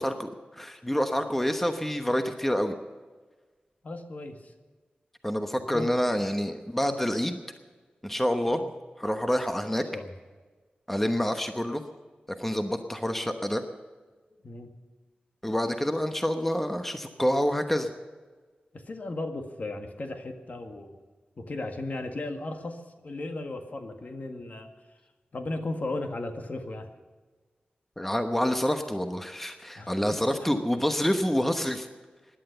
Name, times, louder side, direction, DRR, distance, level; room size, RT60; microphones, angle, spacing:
voice 1, 0.0-2.7 5.2-7.4 8.0-8.6 9.0-9.8 10.9-11.8 12.4-13.6 15.4-17.9 28.0-31.9, equal, 5° left, 6 dB, 1.0 m, -27 dB
voice 2, 3.8-4.5 5.7-5.9 8.5-8.7 9.9-10.1 14.4-14.7 18.7-21.0 21.4-24.7 25.3-26.9 29.8-30.6, left 2 dB, 50° left, 5 dB, 1.8 m, -36 dB
17.0 x 11.5 x 6.8 m, 1.4 s
wide cardioid pair, 90°, 3 cm